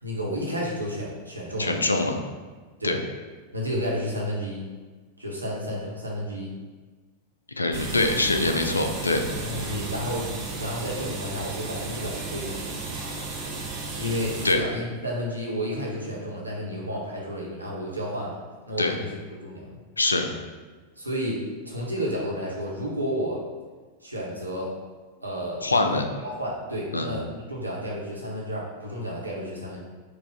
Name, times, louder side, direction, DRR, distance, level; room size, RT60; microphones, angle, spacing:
voice 1, 0.0-1.8 2.8-3.0 3.5-4.6 5.2-6.5 9.4-10.3 10.5-12.7 14.0-18.4 18.7-19.6 21.0-23.4 24.0-24.7 25.2-26.0 26.4-29.8, equal, 85° right, -4 dB, 1.0 m, -31 dB
voice 2, 1.6-2.2 2.8-3.0 7.6-9.2 14.4-14.6 18.8-19.0 20.0-20.3 25.6-26.0 26.9-27.1, left 2 dB, 80° left, 5 dB, 0.4 m, -23 dB
sound 1, 7.7-14.5, right 3 dB, 35° right, 0.9 m, -34 dB
4.7 x 2.4 x 4.8 m, 1.4 s
figure-of-eight pair, 90°, 0 cm